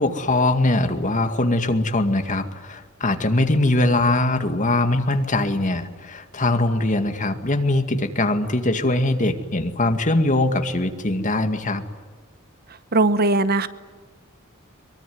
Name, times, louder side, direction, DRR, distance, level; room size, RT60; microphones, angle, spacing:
voice 1, 0.0-11.8, left 2 dB, 35° left, 7 dB, 2.1 m, -21 dB
voice 2, 12.9-13.7, right 2 dB, 45° right, 14 dB, 1.0 m, -19 dB
23.5 x 23.0 x 9.5 m, 1.3 s
head